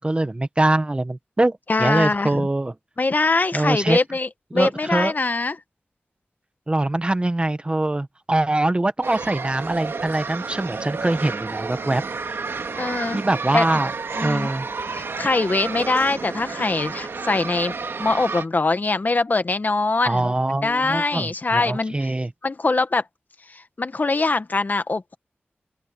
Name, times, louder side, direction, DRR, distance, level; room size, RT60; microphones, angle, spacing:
voice 1, 0.0-2.7 3.5-4.0 4.5-5.1 6.7-12.4 13.1-13.9 14.2-14.7 20.1-22.3, right 2 dB, 25° right, 1.0 m, -23 dB
voice 2, 1.7-2.5 3.0-5.5 12.8-13.2 13.5-13.7 14.2-14.5 14.9-17.7 18.0-20.3 20.6-21.9 22.4-23.0 23.5-25.2, left 3 dB, 45° left, 1.2 m, -23 dB
sound 1, 9.0-18.4, right 4 dB, 85° right, 2.0 m, -31 dB
open air
wide cardioid pair, 85°, 4 cm